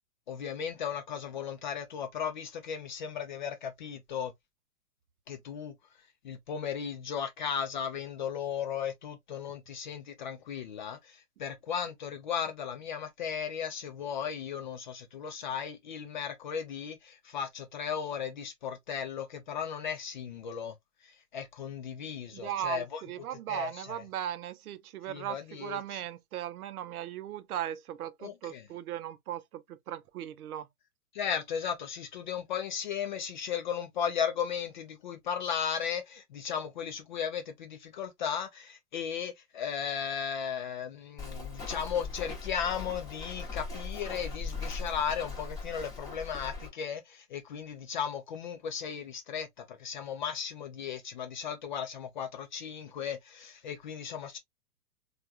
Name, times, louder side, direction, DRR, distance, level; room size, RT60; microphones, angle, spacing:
voice 1, 0.3-4.3 5.3-5.7 6.2-20.7 21.0-23.0 23.5-24.0 25.1-26.0 28.2-28.6 31.1-54.4, left 7 dB, 35° left, 0.4 m, -36 dB
voice 2, 22.3-30.7, right 11 dB, 65° right, 0.6 m, -38 dB
Walk footsteps, 41.2-46.7, left 4 dB, 10° left, 0.9 m, -39 dB
3.3 x 2.3 x 2.4 m
hypercardioid pair, 120°, 47 cm